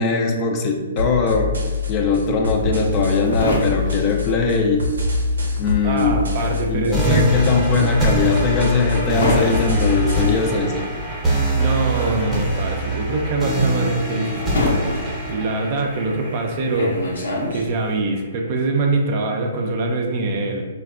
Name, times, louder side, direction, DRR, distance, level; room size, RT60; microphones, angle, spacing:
voice 1, 0.0-1.5 1.9-4.9 5.6-6.2 6.7-10.8, left 4 dB, 30° left, 2 dB, 0.3 m, -20 dB
sound 1, 1.0-10.4, left 3 dB, 90° right, 0.6 m, -25 dB
sound 2, 2.5-5.1 5.3-18.0, left 1 dB, 80° left, 0.7 m, -27 dB
voice 2, 5.8-7.3 11.6-15.0 15.3-17.0 17.5-20.7, right 3 dB, 40° right, 2 dB, 0.4 m, -23 dB
sound 3, 6.9-17.9, right 1 dB, 10° right, 0.7 m, -24 dB
3.3 x 2.2 x 2.4 m, 1.3 s
hypercardioid pair, 140°, 0 cm